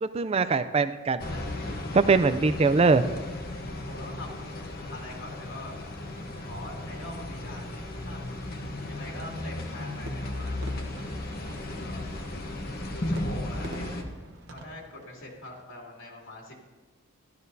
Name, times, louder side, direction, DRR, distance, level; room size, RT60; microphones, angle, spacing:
voice 1, 0.0-1.2 1.9-3.0, right 4 dB, 30° right, 11 dB, 0.3 m, -22 dB
sound 1, 1.2-14.0, left 1 dB, 45° left, 1.0 m, -35 dB
voice 2, 3.9-4.6 4.9-5.7 6.4-8.3 8.8-10.7 11.8-12.1 12.9-16.6, left 1 dB, 70° left, -2 dB, 2.5 m, -44 dB
Fireworks, 9.5-15.6, right 2 dB, 50° right, 1.1 m, -48 dB
13.0 x 12.5 x 2.7 m, 1.3 s
head